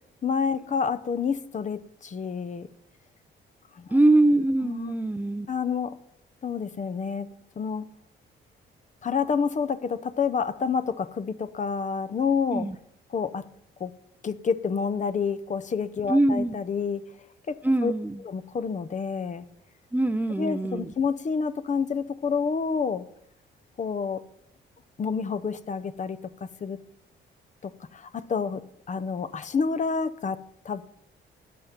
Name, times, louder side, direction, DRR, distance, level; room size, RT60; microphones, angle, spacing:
voice 1, 0.2-2.7 3.8-3.9 4.6-4.9 5.5-6.0 6.4-7.9 9.0-12.7 13.1-13.5 13.8-13.9 14.2-17.1 17.5-17.9 18.2-19.4 20.4-23.0 23.8-24.2 25.0-26.8 27.6-30.8, left 5 dB, 40° left, 12 dB, 0.7 m, -29 dB
voice 2, 3.9-5.5 12.5-12.8 16.1-16.6 17.6-18.2 19.9-20.9, right 2 dB, 10° right, 12 dB, 0.5 m, -23 dB
13.5 x 9.2 x 5.9 m, 0.74 s
cardioid pair, 90°, 20 cm